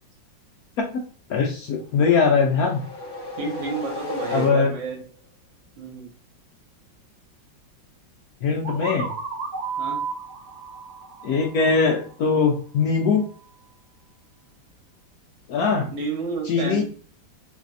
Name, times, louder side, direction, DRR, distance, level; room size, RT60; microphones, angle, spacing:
voice 1, 1.3-2.8 4.3-4.7 8.4-9.1 11.2-13.3 15.5-15.9 16.4-16.8, left 5 dB, 70° left, 1 dB, 0.8 m, -21 dB
sound 1, 1.9-5.0, left 2 dB, 15° left, 1.2 m, -34 dB
voice 2, 3.4-5.0 5.8-6.1 9.8-10.0 15.9-16.8, right 4 dB, 90° right, 0 dB, 1.8 m, -30 dB
sound 2, 8.6-12.4, right 5 dB, 65° right, 1.2 m, -33 dB
4.0 x 2.6 x 2.5 m, 0.42 s
omnidirectional pair, 2.1 m